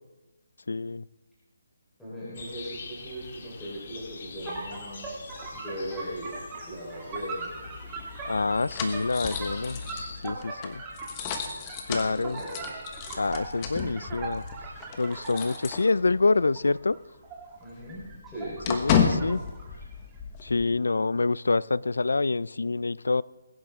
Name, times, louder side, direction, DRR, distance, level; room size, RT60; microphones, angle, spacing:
voice 1, 0.7-1.0 8.3-9.8 10.2-10.8 11.9-12.4 13.2-14.4 15.0-17.0 18.7-19.4 20.4-23.2, left 3 dB, 80° left, 22 dB, 0.3 m, -26 dB
voice 2, 2.0-5.1 5.5-6.4 6.6-7.5 12.0-12.8 17.6-18.6, equal, 5° left, -11 dB, 3.9 m, -39 dB
sound 1, 2.3-10.2, left 4 dB, 45° left, 1.9 m, -45 dB
sound 2, 4.5-15.9 16.3-18.9 19.1-19.9, right 3 dB, 15° right, 2.2 m, -40 dB
sound 3, 7.5-16.4 16.7-16.8 17.2-20.6, left 7 dB, 25° left, 1.3 m, -33 dB
20.5 x 10.5 x 3.6 m, 1.2 s
hypercardioid pair, 160°, 0 cm